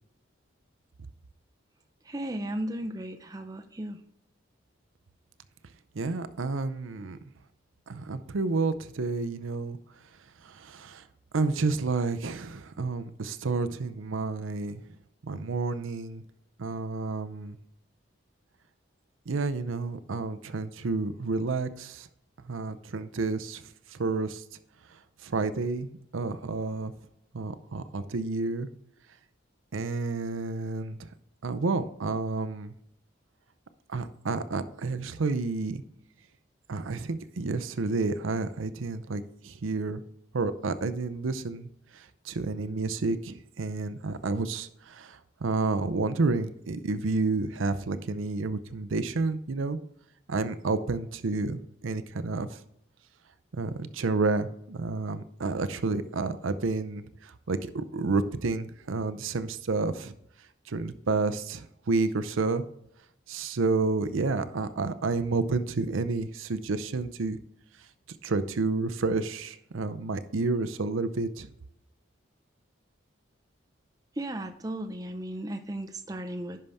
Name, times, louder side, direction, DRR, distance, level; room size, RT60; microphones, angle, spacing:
voice 1, 2.1-4.0 74.2-76.6, right 1 dB, 20° right, 6 dB, 0.5 m, -35 dB
voice 2, 6.0-7.2 7.9-9.8 10.4-11.0 11.3-14.8 15.2-16.2 16.6-17.6 19.3-22.1 22.5-23.6 23.9-24.4 25.2-26.9 27.3-28.7 29.7-31.0 31.4-32.7 33.9-35.8 36.7-40.0 40.3-41.7 42.3-49.8 50.3-52.5 53.5-60.1 60.7-62.6 63.3-67.4 68.2-71.5, right 3 dB, 85° right, 11 dB, 0.6 m, -30 dB
10.5 x 5.6 x 3.5 m, 0.75 s
head